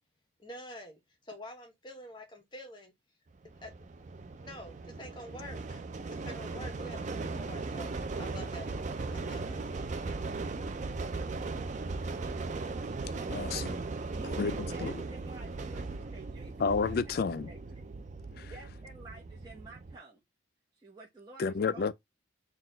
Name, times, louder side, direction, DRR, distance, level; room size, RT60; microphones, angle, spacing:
voice 1, 0.4-2.9 3.4-3.7 4.0-4.1 4.3-5.8 6.1-8.7 9.1-10.3, left 1 dB, 20° left, 0.9 m, -48 dB
sound 1, 3.5-20.0, right 3 dB, 35° right, 0.4 m, -38 dB
voice 2, 13.3-13.8 14.4-14.9 16.6-17.5 18.4-18.5 21.4-21.9, left 5 dB, 50° left, 0.3 m, -31 dB
voice 3, 14.1-16.7 17.0-17.2 17.5-17.9 18.4-20.2 20.8-21.9, right 2 dB, 20° right, 0.8 m, -51 dB
4.0 x 2.3 x 3.8 m
head